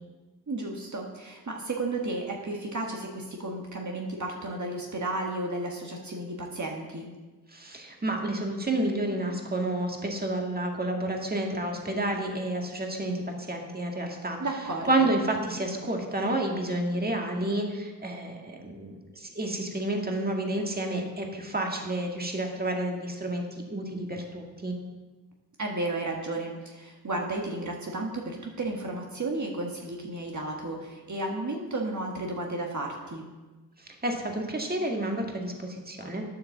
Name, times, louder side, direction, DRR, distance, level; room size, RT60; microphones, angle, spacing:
voice 1, 0.5-7.1 14.4-15.1 25.6-33.2, right 2 dB, 50° right, 0 dB, 1.6 m, -33 dB
voice 2, 7.5-14.4 14.9-24.7 33.8-36.2, right 1 dB, 25° right, 1 dB, 1.9 m, -30 dB
9.8 x 8.5 x 7.2 m, 1.2 s
wide cardioid pair, 95°, 36 cm